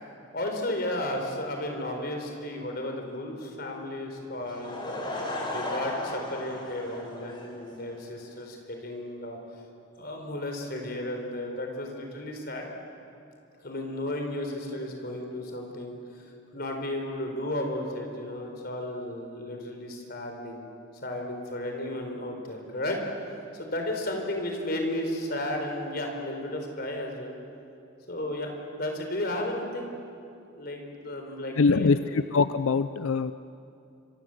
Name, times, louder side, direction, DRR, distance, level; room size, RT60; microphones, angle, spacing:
voice 1, 0.3-5.0 5.5-9.4 10.0-12.7 13.6-16.3 16.5-20.6 21.0-23.0 23.5-27.4 28.1-29.9 30.6-32.2, left 1 dB, 50° left, 3 dB, 4.3 m, -34 dB
Laughter / Crowd, 4.4-8.0, left 1 dB, 25° left, 3.8 m, -35 dB
voice 2, 31.6-33.3, left 4 dB, 90° left, 13 dB, 0.5 m, -23 dB
26.0 x 24.0 x 8.0 m, 2.6 s
head